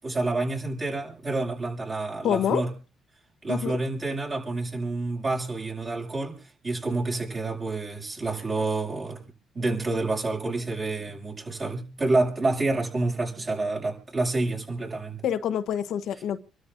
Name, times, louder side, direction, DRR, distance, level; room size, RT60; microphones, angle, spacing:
voice 1, 0.0-2.7 3.4-9.2 9.5-15.2, right 2 dB, 35° right, 7.2 m, -28 dB
voice 2, 2.2-2.6 3.5-3.8 15.2-16.4, left 9 dB, 75° left, 1.0 m, -26 dB
29.0 x 12.5 x 2.6 m
cardioid pair, 90°, 0 cm